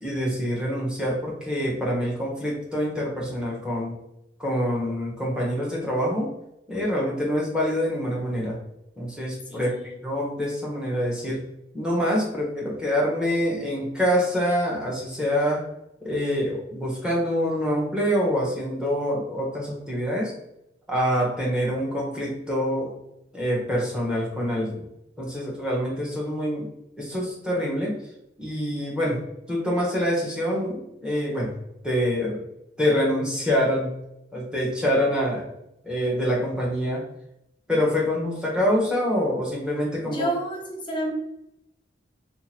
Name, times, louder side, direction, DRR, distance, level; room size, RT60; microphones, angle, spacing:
voice 1, 0.0-4.0 4.4-6.4 6.7-8.6 9.0-9.7 10.0-11.5 11.7-15.7 16.0-20.3 20.9-22.9 23.3-24.8 25.2-26.7 27.0-28.0 28.4-29.2 29.5-31.5 31.8-32.4 32.8-34.0 34.3-35.5 35.8-37.1 37.7-40.3, equal, 5° right, -4 dB, 0.9 m, -25 dB
voice 2, 9.5-10.0 40.0-41.1, right 1 dB, 25° left, 0 dB, 0.8 m, -30 dB
2.8 x 2.5 x 4.2 m, 0.85 s
head